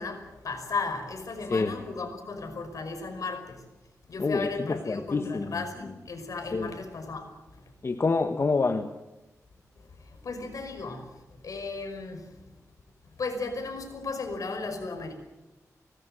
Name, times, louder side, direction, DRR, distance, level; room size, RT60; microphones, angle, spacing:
voice 1, 0.0-3.6 4.1-7.6 10.0-11.1 11.4-12.4 13.2-15.1, left 3 dB, 70° left, 6 dB, 5.5 m, -35 dB
voice 2, 4.2-5.5 6.5-6.7 7.8-8.9, left 4 dB, 45° left, 7 dB, 1.4 m, -27 dB
24.5 x 19.5 x 7.9 m, 1.0 s
cardioid pair, 75°, 6 cm